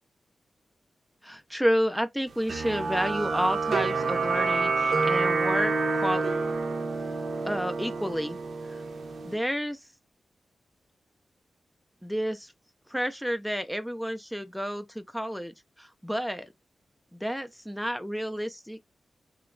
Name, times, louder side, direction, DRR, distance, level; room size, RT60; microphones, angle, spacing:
voice 1, 1.2-6.2 7.4-8.4 8.6-8.8 9.2-9.9 12.0-12.5 12.9-16.5 17.1-18.8, equal, ahead, 0.4 m, -30 dB
sound 1, 2.5-9.4, right 4 dB, 65° right, 0.5 m, -28 dB
3.0 x 2.2 x 3.6 m
wide cardioid pair, 140°, 0 cm